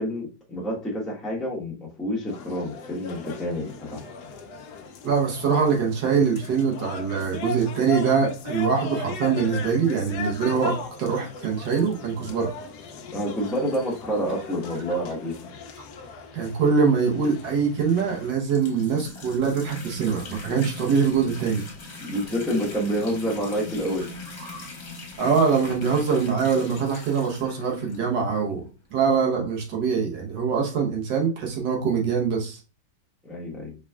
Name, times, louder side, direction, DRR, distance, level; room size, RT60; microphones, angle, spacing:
voice 1, 0.0-4.0 13.1-15.3 22.0-24.2 33.2-33.7, equal, ahead, -4 dB, 0.9 m, -28 dB
sound 1, 2.3-18.3, left 4 dB, 70° left, 1.1 m, -38 dB
voice 2, 5.0-12.5 16.3-21.6 24.4-24.7 25.2-28.6 28.9-32.6, right 6 dB, 70° right, 0 dB, 1.7 m, -23 dB
sound 2, 18.4-28.5 29.1-29.2 29.5-29.6 30.6-30.7, left 3 dB, 45° left, 1.3 m, -41 dB
5.0 x 3.6 x 2.3 m, 0.33 s
omnidirectional pair, 2.0 m